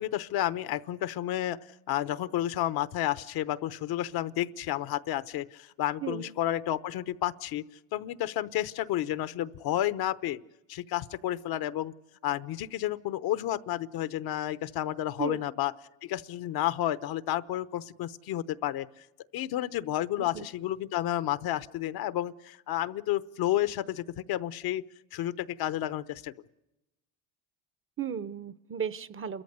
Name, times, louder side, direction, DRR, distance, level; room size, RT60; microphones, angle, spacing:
voice 1, 0.0-1.6 1.9-7.6 7.9-10.4 10.7-11.9 12.2-15.7 16.0-19.1 19.3-24.8 25.1-26.3, left 13 dB, 60° left, 16 dB, 0.9 m, -31 dB
voice 2, 6.0-6.3 15.2-15.5 20.2-20.5 28.0-29.4, right 8 dB, 30° right, 16 dB, 0.8 m, -35 dB
30.0 x 14.0 x 8.1 m, 0.95 s
supercardioid pair, 100°, 41 cm